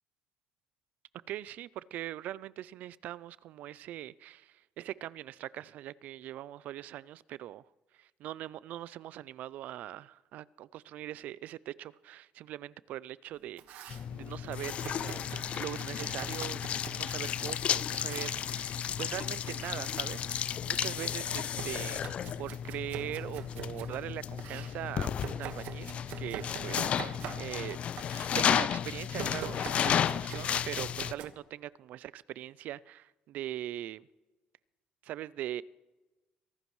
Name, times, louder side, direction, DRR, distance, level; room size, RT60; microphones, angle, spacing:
voice 1, 1.3-7.6 8.0-13.8 14.1-22.0 22.4-27.8 28.4-34.1 35.0-35.6, right 13 dB, 65° right, 20 dB, 0.3 m, -41 dB
Domestic sounds home sounds, 13.3-14.1 14.8-17.3 17.9-18.4 19.2-19.8 20.2-24.0 24.4-27.7 28.0-28.4 29.2-31.3, right 9 dB, 85° right, 1.4 m, -45 dB
sound 1, 13.9-31.1, left 9 dB, 45° left, 0.3 m, -33 dB
24.0 x 12.5 x 3.1 m, 1.1 s
cardioid pair, 135°, 3 cm